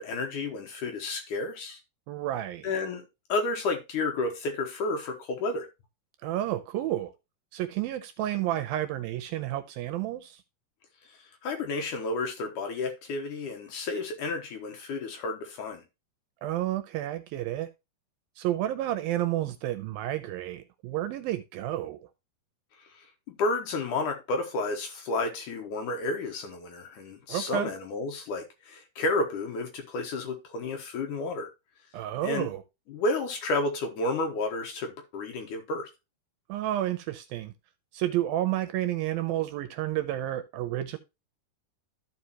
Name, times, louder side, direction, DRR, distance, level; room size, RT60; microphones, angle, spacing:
voice 1, 0.0-1.8 2.6-3.0 3.3-5.7 11.1-15.8 22.9-31.5 32.2-32.5 32.9-35.9, left 3 dB, 65° left, 2.3 m, -31 dB
voice 2, 2.1-2.7 6.2-7.1 7.5-10.4 16.4-17.7 18.4-22.0 27.3-27.7 31.9-32.6 36.5-37.5 37.9-41.0, right 13 dB, 80° right, 2.3 m, -30 dB
14.0 x 5.0 x 2.9 m
omnidirectional pair, 4.6 m